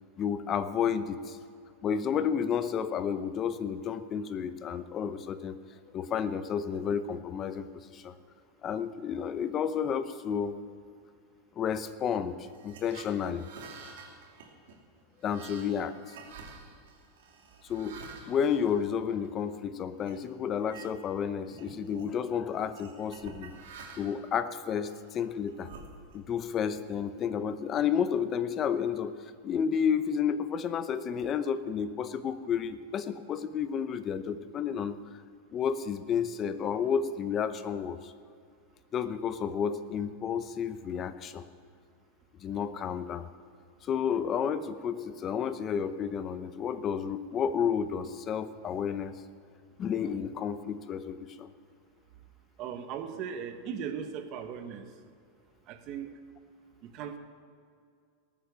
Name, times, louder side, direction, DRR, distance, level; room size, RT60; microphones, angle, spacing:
voice 1, 0.2-1.4 1.8-5.6 5.9-8.1 8.6-10.6 11.6-12.4 12.6-13.5 15.2-16.1 17.7-18.0 18.3-23.5 24.0-25.7 26.1-29.1 29.4-35.0 35.5-38.1 38.9-41.4 42.4-43.3 43.8-49.1 49.8-51.5, left 7 dB, 25° left, 12 dB, 0.7 m, -31 dB
sound 1, 12.5-19.5 20.0-20.2 20.6-21.2 21.5-22.1 22.7-24.3 24.8-26.4, right 5 dB, 75° right, 2.7 m, -49 dB
voice 2, 52.6-54.8 55.7-56.1 56.9-57.2, right 7 dB, 40° right, 8 dB, 1.2 m, -38 dB
18.5 x 8.9 x 7.0 m, 2.3 s
supercardioid pair, 160°, 0 cm